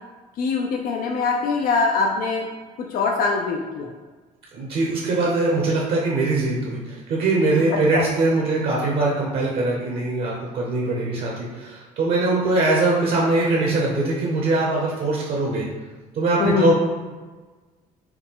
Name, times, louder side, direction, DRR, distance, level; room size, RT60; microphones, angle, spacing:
voice 1, 0.4-2.5 2.8-3.9 7.9-8.0 16.4-16.7, left 4 dB, 60° left, 2 dB, 0.4 m, -23 dB
voice 2, 4.5-15.6 16.1-16.7, right 2 dB, 60° right, -3 dB, 0.9 m, -22 dB
4.6 x 2.1 x 3.5 m, 1.3 s
cardioid pair, 110°, 17 cm